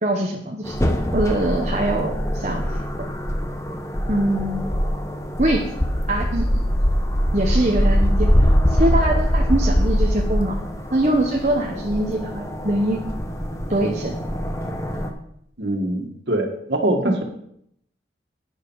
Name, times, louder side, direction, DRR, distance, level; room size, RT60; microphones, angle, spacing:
voice 1, 0.0-0.7 1.1-2.6 3.0-3.1 4.1-4.7 5.4-5.7 6.1-6.7 7.3-10.6 10.9-13.0 13.7-14.1 17.0-17.2, right 1 dB, 40° right, 0 dB, 1.1 m, -23 dB
sound 1, 0.7-15.1, equal, 15° left, 1.1 m, -23 dB
voice 2, 15.6-17.1, right 1 dB, 75° right, 3 dB, 2.1 m, -23 dB
11.5 x 10.0 x 4.8 m, 0.72 s
head